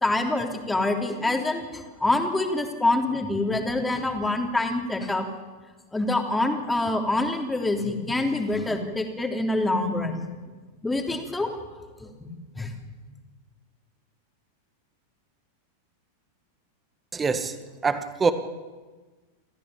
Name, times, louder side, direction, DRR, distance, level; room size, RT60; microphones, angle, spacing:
voice 1, 0.0-5.3 5.9-10.2 10.8-11.5 12.0-12.8, left 2 dB, 5° left, 3.1 m, -26 dB
voice 2, 17.1-17.5 17.8-18.3, right 5 dB, 15° right, 1.9 m, -24 dB
27.5 x 14.5 x 8.9 m
figure-of-eight pair, 90°, 0 cm